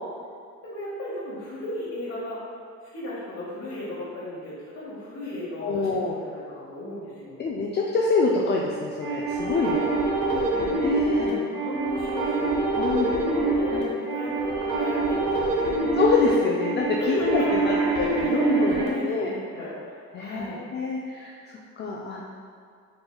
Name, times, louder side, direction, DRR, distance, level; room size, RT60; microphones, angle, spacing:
voice 1, 0.6-2.4 2.8-7.4 9.4-10.9 11.2-12.6 12.9-15.8 17.0-17.6 18.1-20.6, left 1 dB, 55° left, -8 dB, 1.0 m, -36 dB
voice 2, 5.6-6.1 7.4-9.9 10.8-11.4 12.7-13.1 16.0-19.3 20.1-22.2, left 4 dB, 35° left, -2 dB, 0.4 m, -26 dB
sound 1, 9.0-18.9, right 3 dB, 90° right, 0.8 m, -25 dB
4.4 x 3.3 x 2.3 m, 2.2 s
cardioid pair, 90°, 30 cm